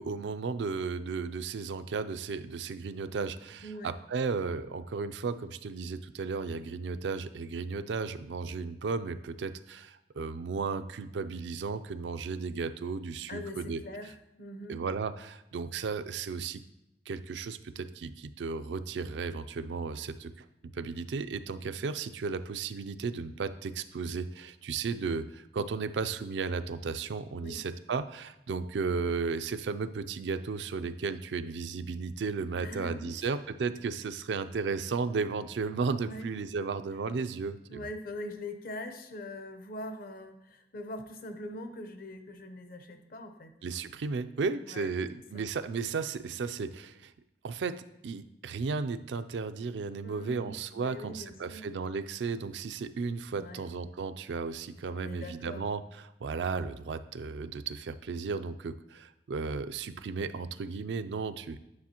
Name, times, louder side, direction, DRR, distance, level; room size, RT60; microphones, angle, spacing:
voice 1, 0.0-13.8 14.7-16.6 17.1-20.5 20.7-37.9 43.6-47.1 47.4-61.6, right 4 dB, 80° right, 11 dB, 0.4 m, -34 dB
voice 2, 3.6-3.9 13.3-14.8 27.4-27.6 32.6-33.3 36.0-36.3 37.7-43.5 44.6-44.9 45.3-45.5 50.0-51.7 53.4-53.6 54.9-55.6, left 1 dB, 55° left, 8 dB, 0.8 m, -42 dB
9.7 x 6.1 x 2.9 m, 0.87 s
head